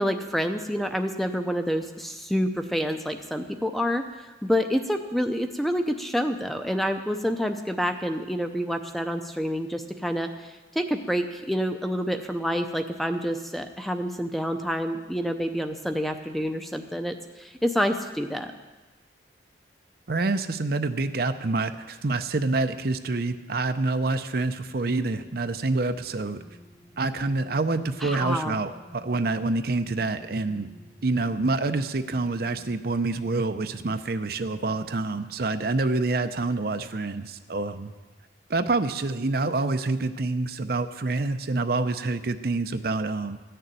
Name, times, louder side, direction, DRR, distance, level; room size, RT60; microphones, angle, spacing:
voice 1, 0.0-4.0 4.4-18.5 28.0-28.6, equal, ahead, 6 dB, 0.6 m, -28 dB
voice 2, 20.1-26.4 27.0-30.7 31.0-37.9 38.5-43.4, right 3 dB, 55° right, 9 dB, 0.6 m, -27 dB
sound 1, 23.0-36.0 36.4-36.6, left 1 dB, 85° left, 3.2 m, -53 dB
14.0 x 6.7 x 9.1 m, 1.2 s
head